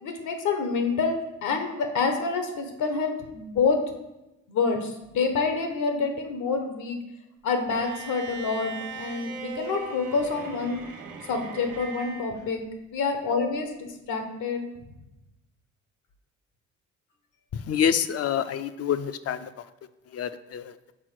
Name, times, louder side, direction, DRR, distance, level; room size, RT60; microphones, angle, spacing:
voice 1, 0.0-3.8 4.5-7.0 7.4-10.8 11.3-12.6 12.9-14.7, left 4 dB, 80° left, 5 dB, 1.2 m, -27 dB
Bowed string instrument, 7.7-12.4, right 5 dB, 85° right, 1.1 m, -39 dB
voice 2, 17.7-19.4 20.2-20.6, left 8 dB, 55° left, 12 dB, 0.5 m, -26 dB
6.1 x 4.3 x 6.3 m, 0.93 s
cardioid pair, 90°, 30 cm